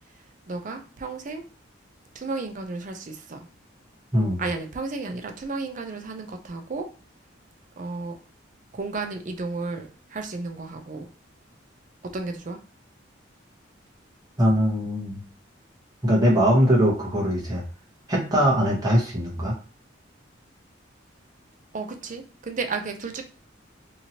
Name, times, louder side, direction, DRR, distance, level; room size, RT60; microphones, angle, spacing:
voice 1, 0.5-1.4 2.1-3.5 4.4-6.9 7.8-8.2 8.7-11.1 12.1-12.6 21.7-23.2, right 3 dB, 40° right, 5 dB, 0.5 m, -33 dB
voice 2, 14.4-15.2 16.0-17.6 18.1-19.5, equal, 20° right, -4 dB, 1.0 m, -21 dB
2.9 x 2.7 x 2.8 m, 0.36 s
head